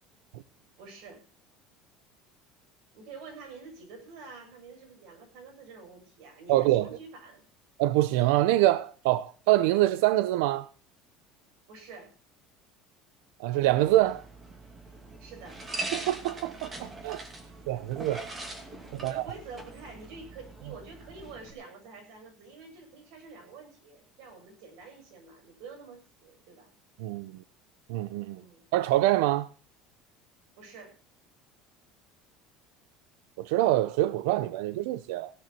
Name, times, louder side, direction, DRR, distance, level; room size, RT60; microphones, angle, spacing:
voice 1, 0.8-1.2 2.9-7.4 11.7-12.1 15.2-15.6 17.5-17.6 19.0-26.7 28.3-28.6 30.6-31.0, right 4 dB, 60° right, 7.7 m, -47 dB
voice 2, 6.5-6.9 7.8-10.7 13.4-14.2 15.9-17.2 17.7-18.3 19.0-19.2 27.0-27.4 27.9-28.4 28.7-29.5 33.4-35.3, right 15 dB, 90° right, 0.6 m, -25 dB
sound 1, 13.5-21.5, right 2 dB, 15° right, 2.6 m, -42 dB
17.0 x 12.0 x 4.4 m
cardioid pair, 175°, 0 cm